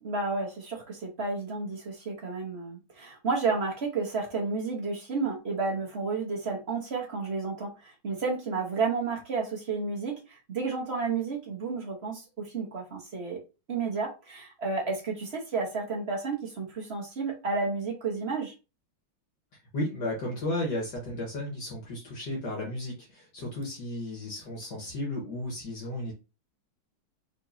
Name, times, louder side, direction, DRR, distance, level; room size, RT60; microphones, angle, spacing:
voice 1, 0.0-13.4 13.7-18.5, right 4 dB, 35° right, 1.2 m, -31 dB
voice 2, 19.7-26.1, left 1 dB, 55° left, 1.9 m, -34 dB
4.6 x 4.2 x 2.7 m
omnidirectional pair, 2.3 m